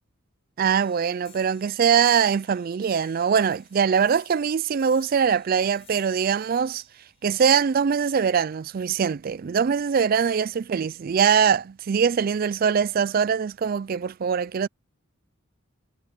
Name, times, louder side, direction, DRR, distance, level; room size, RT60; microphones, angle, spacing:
voice 1, 0.6-6.8 7.2-14.7, right 7 dB, 45° right, 0.3 m, -22 dB
sound 1, 0.8-7.8, left 8 dB, 30° left, 4.6 m, -56 dB
head